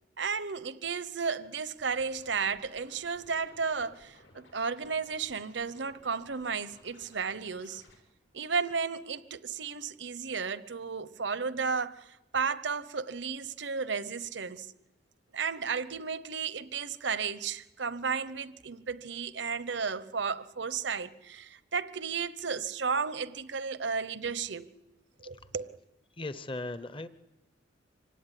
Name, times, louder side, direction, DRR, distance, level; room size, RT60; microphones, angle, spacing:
voice 1, 0.2-7.8 8.3-12.1 12.3-14.7 15.3-24.7 25.2-25.8, right 5 dB, 70° right, 1.0 m, -33 dB
Scratching (performance technique), 1.8-8.0, left 2 dB, 80° left, 6.7 m, -58 dB
voice 2, 26.1-27.1, left 2 dB, 25° left, 0.9 m, -37 dB
25.0 x 17.0 x 10.0 m
head